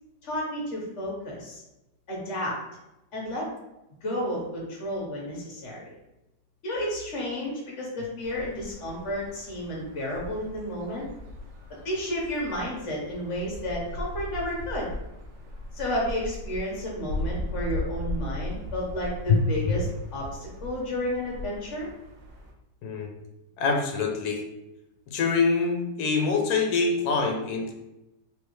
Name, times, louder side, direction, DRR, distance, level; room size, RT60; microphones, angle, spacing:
voice 1, 0.2-1.6 2.1-2.6 3.1-3.5 4.0-5.9 6.6-11.0 11.8-14.9 15.7-19.9 20.1-21.9, left 1 dB, 45° left, -3 dB, 1.3 m, -31 dB
sound 1, 8.2-22.5, left 1 dB, 80° right, 1.4 m, -38 dB
voice 2, 23.6-24.4 25.1-27.7, left 4 dB, 70° left, 1 dB, 1.2 m, -24 dB
3.4 x 3.4 x 3.0 m, 0.93 s
omnidirectional pair, 1.9 m